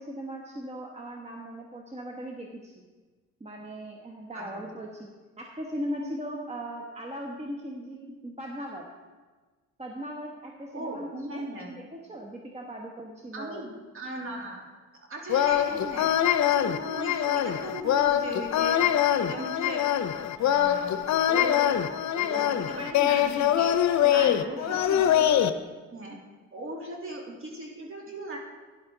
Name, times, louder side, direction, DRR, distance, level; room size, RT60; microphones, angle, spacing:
voice 1, 0.0-2.9 3.4-5.1 5.4-8.8 9.8-13.7 15.7-15.8 24.0-24.8, equal, 20° right, 0 dB, 1.2 m, -38 dB
voice 2, 10.7-11.7 13.3-14.6 15.1-16.1 16.4-18.8 19.2-19.9 20.3-25.3 25.9-26.2 26.5-28.4, right 1 dB, 45° right, -1 dB, 3.1 m, -38 dB
sound 1, 15.3-25.5, left 11 dB, 65° left, 0.7 m, -24 dB
12.5 x 10.5 x 3.8 m, 1.4 s
cardioid pair, 90°, 30 cm